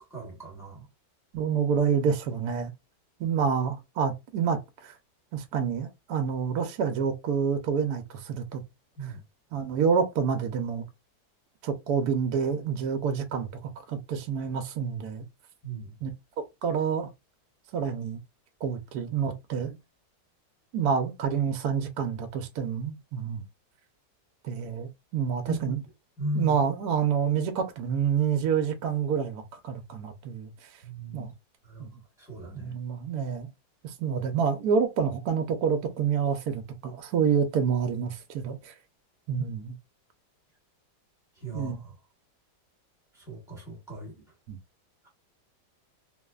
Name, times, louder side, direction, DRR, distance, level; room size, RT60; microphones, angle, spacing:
voice 1, 0.1-0.9 9.0-9.2 15.6-16.0 25.5-25.8 26.2-26.6 30.8-31.3 31.6-31.9 32.2-32.7 39.4-39.5 41.4-41.9 43.1-44.3, right 1 dB, ahead, 0.9 m, -37 dB
voice 2, 1.3-2.7 3.2-4.9 5.3-8.6 9.5-10.9 11.6-13.5 13.9-15.2 16.0-16.1 16.6-17.1 17.7-18.2 18.6-19.8 20.7-23.4 24.5-25.8 26.4-30.5 31.1-31.3 31.8-31.9 32.6-33.5 33.8-38.7 39.3-39.7 41.5-41.8 44.5-44.6, right 6 dB, 70° right, 1.0 m, -28 dB
3.1 x 2.0 x 2.3 m
omnidirectional pair, 1.9 m